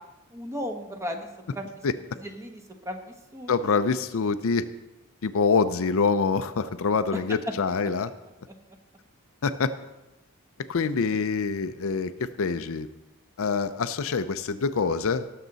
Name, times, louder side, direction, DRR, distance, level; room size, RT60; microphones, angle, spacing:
voice 1, 0.3-1.3 1.5-1.6 2.2-3.0 3.3-3.8, equal, 15° right, 4 dB, 1.1 m, -35 dB
voice 2, 3.5-4.6 5.2-8.1 9.4-9.7 10.7-12.9 13.4-15.3, left 5 dB, 65° left, 11 dB, 0.5 m, -25 dB
18.0 x 6.7 x 4.0 m, 1.0 s
head